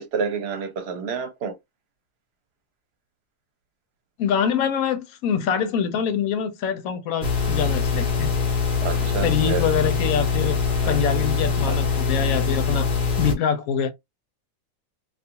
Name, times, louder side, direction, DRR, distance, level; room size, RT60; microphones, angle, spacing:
voice 1, 0.0-1.6 8.8-9.6 10.8-11.0 11.6-11.8, right 6 dB, 55° right, 0.8 m, -29 dB
voice 2, 4.2-8.3 9.2-10.6 10.9-12.9 13.2-13.9, left 7 dB, 85° left, 1.1 m, -24 dB
sound 1, 7.2-13.3, left 5 dB, 45° left, 0.9 m, -23 dB
2.4 x 2.4 x 2.7 m
omnidirectional pair, 1.4 m